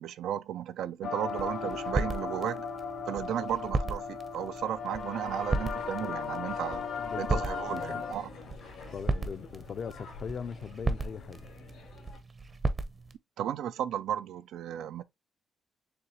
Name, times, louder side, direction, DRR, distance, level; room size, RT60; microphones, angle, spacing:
voice 1, 0.0-2.7 3.1-6.8 7.2-8.3 13.4-15.0, right 10 dB, 80° right, 0.3 m, -34 dB
sound 1, 1.0-8.1, left 6 dB, 70° left, 1.0 m, -37 dB
sound 2, 1.2-13.2, right 3 dB, 35° right, 0.6 m, -36 dB
sound 3, 5.6-12.2, left 4 dB, 85° left, 2.1 m, -49 dB
voice 2, 7.0-7.4 7.7-8.0 8.9-11.5, left 6 dB, 50° left, 0.5 m, -40 dB
6.7 x 2.3 x 2.8 m
cardioid pair, 90°, 0 cm